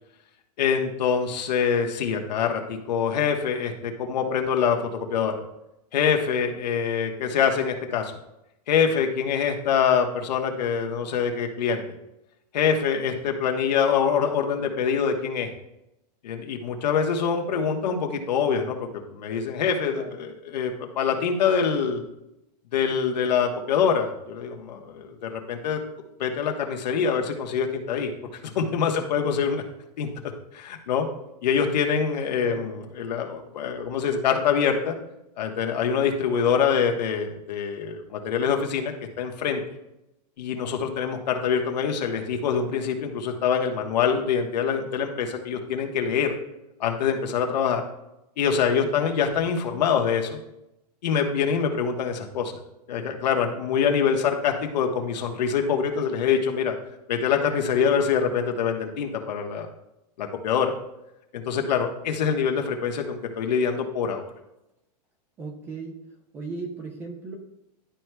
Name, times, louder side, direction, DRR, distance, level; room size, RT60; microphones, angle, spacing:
voice 1, 0.6-5.3 5.9-8.1 8.7-11.8 12.5-15.5 16.2-22.0 22.7-25.8 26.2-28.1 28.5-29.6 30.0-30.1 30.5-31.1 31.4-35.0 35.4-39.6 40.4-46.3 46.8-47.8 48.4-50.4 51.0-52.6 52.9-56.8 57.1-59.7 60.2-60.7 61.3-64.2, left 7 dB, 90° left, 3 dB, 1.2 m, -25 dB
voice 2, 65.4-66.0 66.3-67.4, right 3 dB, 10° right, 3 dB, 0.4 m, -36 dB
11.5 x 4.6 x 2.2 m, 0.88 s
supercardioid pair, 180°, 21 cm